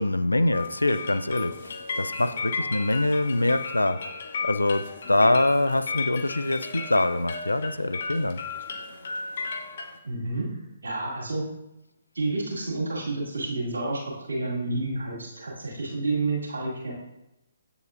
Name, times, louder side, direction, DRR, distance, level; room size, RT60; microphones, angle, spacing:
voice 1, 0.0-8.4, left 2 dB, 85° left, 12 dB, 0.4 m, -24 dB
sound 1, 0.5-10.0, left 4 dB, 55° left, 0.7 m, -34 dB
voice 2, 10.0-10.5 10.8-11.4 12.1-16.9, right 2 dB, 70° right, -2 dB, 2.1 m, -29 dB
7.9 x 6.9 x 2.5 m, 0.92 s
figure-of-eight pair, 135°, 0 cm